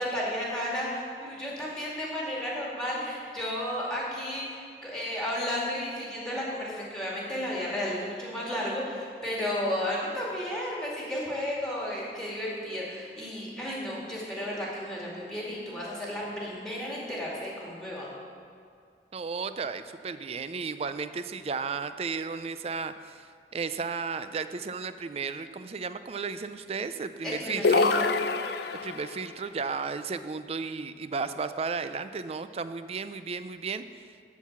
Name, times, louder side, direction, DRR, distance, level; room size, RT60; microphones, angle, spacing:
voice 1, 0.0-18.1 27.2-28.1, left 1 dB, 5° left, -4 dB, 2.3 m, -33 dB
voice 2, 19.1-27.8 28.8-34.1, right 5 dB, 35° right, 12 dB, 0.4 m, -34 dB
sound 1, 27.6-29.2, left 4 dB, 65° left, 0.5 m, -25 dB
12.5 x 4.7 x 7.2 m, 2.2 s
head